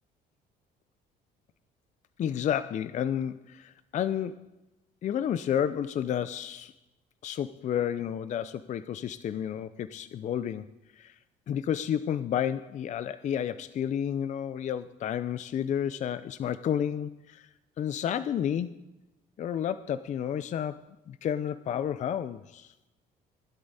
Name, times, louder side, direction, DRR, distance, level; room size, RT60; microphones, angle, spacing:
voice 1, 2.2-4.5 5.0-6.7 7.2-10.7 11.0-11.2 11.5-17.5 17.8-18.8 19.4-22.7, left 9 dB, 45° left, 14 dB, 0.5 m, -31 dB
16.0 x 11.5 x 4.1 m, 0.99 s
cardioid pair, 110°, 17 cm